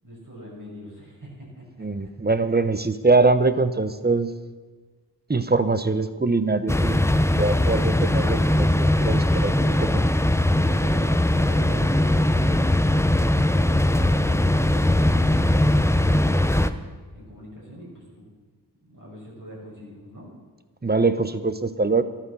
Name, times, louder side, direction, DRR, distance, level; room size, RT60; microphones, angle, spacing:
voice 1, 0.0-2.1 10.7-12.8 13.2-16.8 17.1-18.3 18.8-20.3, equal, 50° right, -5 dB, 6.2 m, -42 dB
voice 2, 1.8-4.3 5.3-10.0 20.8-22.0, right 3 dB, 25° right, 12 dB, 0.9 m, -23 dB
sound 1, 6.7-16.7, left 1 dB, 5° left, 0.7 m, -20 dB
13.5 x 12.0 x 7.0 m, 1.4 s
wide cardioid pair, 65°, 40 cm